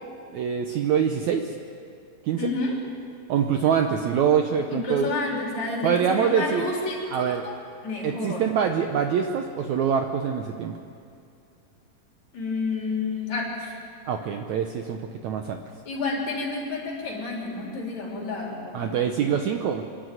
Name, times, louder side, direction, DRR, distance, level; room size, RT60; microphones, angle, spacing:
voice 1, 0.3-1.5 2.3-2.5 3.3-5.1 5.8-6.7 7.1-7.5 8.0-10.7 14.1-15.6 18.7-19.8, right 7 dB, 70° right, 5 dB, 1.8 m, -24 dB
voice 2, 2.4-2.8 4.7-7.6 7.8-8.4 12.3-13.7 15.8-19.3, left 3 dB, 50° left, -2 dB, 4.6 m, -30 dB
25.5 x 11.0 x 9.2 m, 2.4 s
omnidirectional pair, 4.1 m